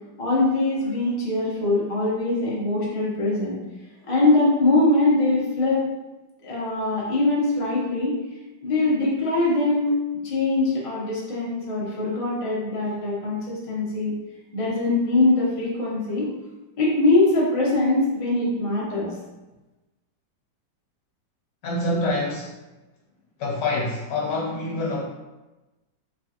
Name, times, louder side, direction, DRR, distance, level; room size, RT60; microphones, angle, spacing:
voice 1, 0.2-3.6 4.1-5.8 6.4-8.2 8.6-9.9 10.2-14.1 14.5-16.3 16.8-19.1, left 2 dB, 40° left, -6 dB, 0.4 m, -22 dB
voice 2, 21.6-22.6 23.4-25.1, left 2 dB, 65° left, -4 dB, 1.5 m, -26 dB
3.2 x 3.2 x 2.9 m, 1.1 s
omnidirectional pair, 2.1 m